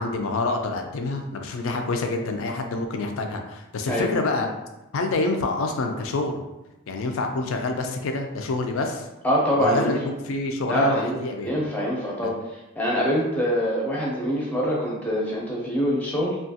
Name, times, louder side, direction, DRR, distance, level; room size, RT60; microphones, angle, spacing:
voice 1, 0.0-4.5 4.9-6.4 6.9-9.1 9.5-11.6 12.2-12.3, left 3 dB, 65° left, 4 dB, 0.3 m, -27 dB
voice 2, 9.2-9.9 10.6-16.4, equal, 5° left, -4 dB, 0.5 m, -24 dB
2.8 x 2.3 x 2.7 m, 1.0 s
head